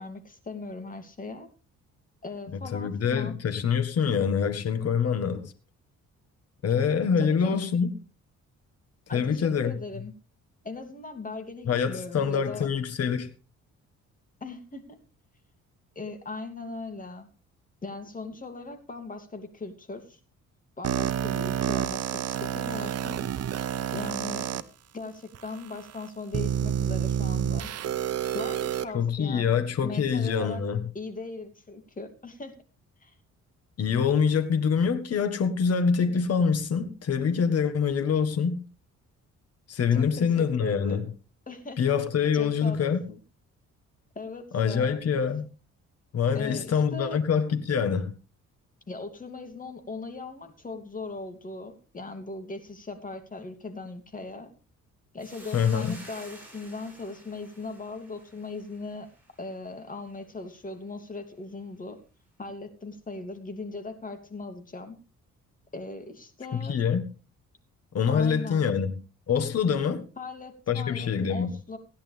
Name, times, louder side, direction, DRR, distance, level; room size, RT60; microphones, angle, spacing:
voice 1, 0.0-1.5 2.2-3.4 7.2-7.7 9.1-10.1 10.6-12.7 14.4-15.0 15.9-17.3 17.8-20.2 20.8-23.3 23.9-24.6 24.9-27.7 28.3-29.5 29.8-30.6 30.9-32.5 33.0-33.2 39.9-41.1 41.5-41.8 42.3-42.8 43.1-43.2 44.1-45.0 46.3-47.2 48.9-54.5 55.1-59.1 59.4-62.0 62.4-65.0 65.7-66.8 68.1-68.7 70.2-71.8, left 3 dB, 25° left, 2.8 m, -39 dB
voice 2, 2.7-5.5 6.6-7.9 9.1-9.7 11.7-13.3 28.9-30.8 33.8-38.6 39.7-41.1 41.8-43.0 44.5-45.5 46.1-48.1 55.5-55.9 66.5-67.0 67.9-69.0 69.3-70.0 70.7-71.5, left 6 dB, 55° left, 1.6 m, -25 dB
sound 1, 20.8-24.6 25.3-25.4 26.3-28.8, right 9 dB, 55° right, 0.9 m, -29 dB
Hiss, 55.2-59.7, right 1 dB, 5° right, 7.9 m, -50 dB
16.5 x 10.5 x 3.5 m
cardioid pair, 90°, 30 cm